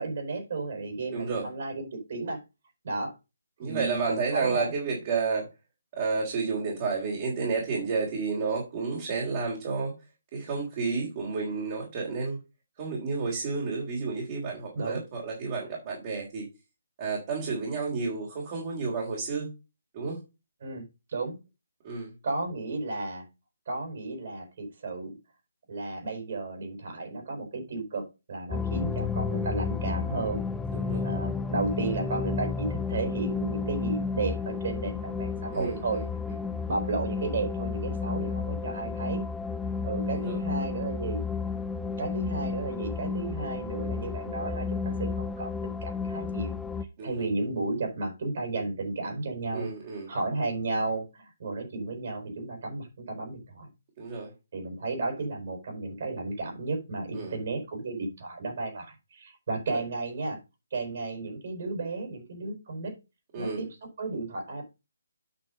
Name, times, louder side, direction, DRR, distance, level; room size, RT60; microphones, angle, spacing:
voice 1, 0.0-2.4 2.8-3.1 3.6-4.7 14.7-15.0 20.6-21.4 22.2-23.2 23.7-25.1 25.7-30.4 31.0-36.0 36.7-39.3 39.8-41.2 42.0-46.5 47.0-49.7 50.1-53.7 54.5-60.4 60.7-62.9 63.4-63.7 64.0-64.6, right 3 dB, 50° right, 3 dB, 5.1 m, -33 dB
voice 2, 1.1-1.5 3.6-5.5 5.9-9.9 10.3-12.4 12.8-16.5 17.0-19.5 19.9-20.2 21.8-22.1 30.7-31.1 35.5-36.4 40.1-40.4 47.0-47.3 49.5-50.1 54.0-54.3 57.1-57.4 59.7-59.8 63.3-63.7, right 4 dB, 30° right, -3 dB, 3.5 m, -31 dB
sound 1, 28.5-46.8, left 5 dB, 5° left, 0.6 m, -32 dB
8.7 x 6.1 x 5.3 m, 0.27 s
figure-of-eight pair, 150°, 0 cm